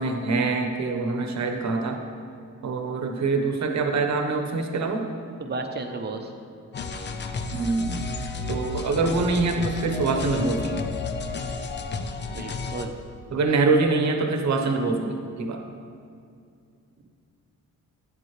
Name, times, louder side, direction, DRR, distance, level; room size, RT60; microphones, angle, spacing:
voice 1, 0.0-2.0 2.6-5.0 7.5-8.1 8.5-10.8 13.3-15.6, right 3 dB, 60° right, 4 dB, 1.0 m, -24 dB
voice 2, 5.4-6.3 12.3-12.9, right 3 dB, 35° right, 4 dB, 0.8 m, -33 dB
sound 1, 6.7-12.9, left 4 dB, 35° left, 0.5 m, -32 dB
12.5 x 9.8 x 3.3 m, 2.3 s
wide cardioid pair, 170°, 32 cm